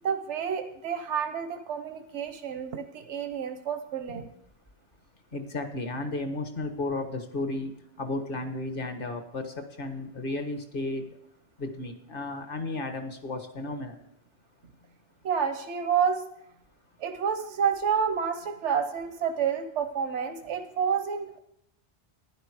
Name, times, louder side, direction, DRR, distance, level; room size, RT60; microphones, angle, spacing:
voice 1, 0.0-4.3 15.2-16.2 17.0-21.3, right 7 dB, 85° right, 8 dB, 1.2 m, -29 dB
voice 2, 5.3-7.7 8.0-11.1 11.6-14.0, left 2 dB, 50° left, 7 dB, 1.5 m, -33 dB
12.0 x 10.5 x 4.8 m, 0.73 s
omnidirectional pair, 1.2 m